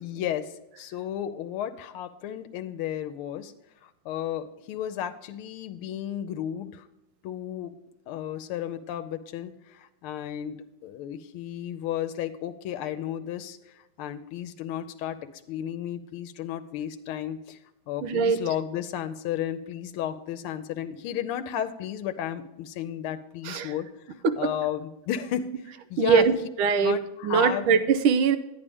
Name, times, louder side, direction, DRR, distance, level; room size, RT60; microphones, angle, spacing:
voice 1, 0.0-3.5 3.8-6.9 7.2-7.7 8.1-17.6 17.9-26.3 26.8-27.7, left 10 dB, 85° left, 9 dB, 1.5 m, -33 dB
voice 2, 18.0-18.4 23.4-23.7 24.2-24.4 26.0-26.3 26.6-27.0 27.2-28.4, right 6 dB, 80° right, 10 dB, 1.6 m, -21 dB
10.5 x 9.7 x 3.5 m, 0.92 s
omnidirectional pair, 2.4 m